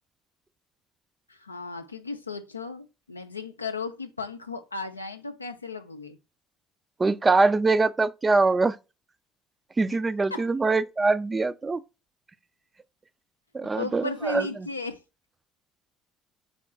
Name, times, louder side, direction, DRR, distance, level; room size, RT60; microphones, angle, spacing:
voice 1, 1.3-6.2 10.3-10.5 13.8-15.0, left 3 dB, 90° left, 0.3 m, -35 dB
voice 2, 7.0-8.8 9.8-11.8 13.5-14.7, right 3 dB, 25° right, 0.4 m, -23 dB
3.7 x 2.4 x 4.3 m
figure-of-eight pair, 55°, 0 cm